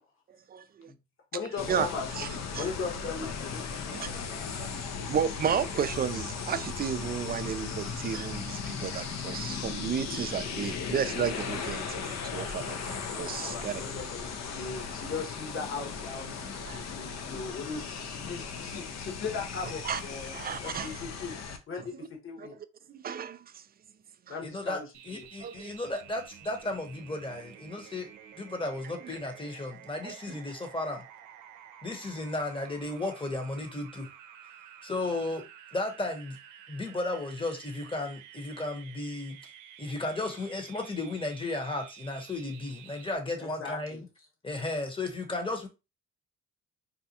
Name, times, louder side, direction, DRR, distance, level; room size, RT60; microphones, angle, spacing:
voice 1, 0.5-0.9 1.7-1.9 2.2-2.3 2.5-2.6 3.9-4.1 4.6-4.7 5.1-13.8 16.6-16.8 19.8-20.0 20.3-20.9 22.4-22.5 22.9-23.6 24.3-24.4 25.4-25.7 30.0-30.4, right 8 dB, 30° right, 0.4 m, -33 dB
voice 2, 1.3-2.1 2.5-4.4 13.4-21.4 21.7-22.6 24.3-24.8 25.1-25.2 43.4-44.0, left 4 dB, 45° left, 1.3 m, -38 dB
sound 1, 1.6-21.6, left 5 dB, 60° left, 0.8 m, -37 dB
voice 3, 24.4-24.8 25.1-28.1 28.4-31.0 31.8-34.1 34.8-36.4 36.7-39.4 39.8-44.1 44.4-45.7, left 2 dB, 15° left, 1.0 m, -34 dB
sound 2, 24.9-43.2, right 10 dB, 85° right, 0.6 m, -51 dB
4.1 x 2.3 x 2.8 m
cardioid pair, 90°, 30 cm